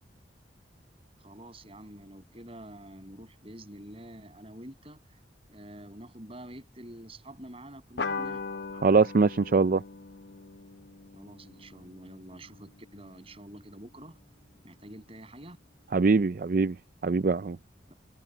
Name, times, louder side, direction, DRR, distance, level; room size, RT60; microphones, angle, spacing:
voice 1, 1.2-5.2 5.5-8.4 11.1-14.2 14.6-15.6, right 1 dB, 30° right, 7.2 m, -47 dB
sound 1, 8.0-12.9, left 4 dB, 65° left, 0.9 m, -39 dB
voice 2, 8.8-9.8 15.9-16.7 17.0-17.6, right 4 dB, 50° right, 0.4 m, -22 dB
head